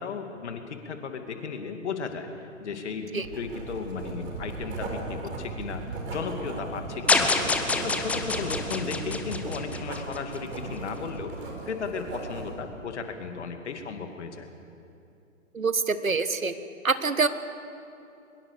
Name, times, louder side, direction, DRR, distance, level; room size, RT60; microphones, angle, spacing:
voice 1, 0.0-11.3 11.7-14.5, left 5 dB, 60° left, 6 dB, 2.6 m, -35 dB
Writing, 3.2-12.6, right 3 dB, 50° right, 5.7 m, -37 dB
sound 1, 7.1-10.4, left 3 dB, 5° left, 0.6 m, -26 dB
voice 2, 15.5-16.5 16.8-17.3, right 4 dB, 85° right, 11 dB, 1.5 m, -25 dB
23.0 x 21.5 x 6.9 m, 2.7 s
figure-of-eight pair, 120°, 40 cm